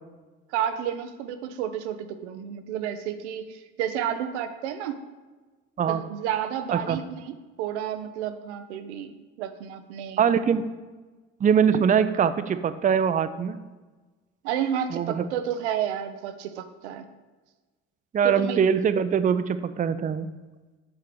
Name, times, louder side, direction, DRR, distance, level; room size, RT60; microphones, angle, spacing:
voice 1, 0.5-5.0 5.9-9.1 9.4-10.3 14.4-17.1 18.2-18.6, right 9 dB, 90° right, 9 dB, 0.5 m, -31 dB
voice 2, 10.2-10.6 11.4-13.6 14.9-15.3 18.1-20.3, right 7 dB, 25° right, 12 dB, 0.4 m, -22 dB
5.9 x 3.7 x 6.1 m, 1.3 s
hypercardioid pair, 60°, 33 cm